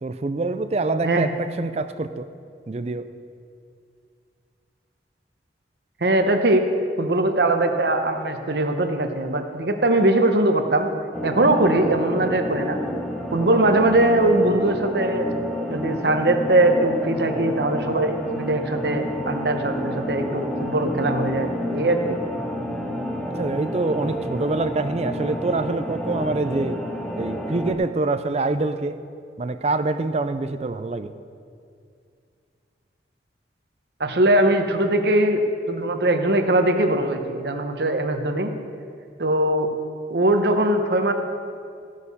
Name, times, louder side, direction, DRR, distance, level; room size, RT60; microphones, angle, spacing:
voice 1, 0.0-2.3 2.7-3.1 23.3-26.9 27.2-29.0 29.4-31.1, right 3 dB, 35° right, 11 dB, 0.4 m, -25 dB
voice 2, 6.0-6.6 7.0-10.9 11.2-12.8 13.3-15.3 15.7-22.2 34.0-38.5 39.2-39.7 40.1-41.1, right 1 dB, 65° right, 5 dB, 0.9 m, -21 dB
sound 1, 11.1-27.7, equal, ahead, 0.7 m, -30 dB
15.0 x 6.6 x 5.5 m, 2.3 s
head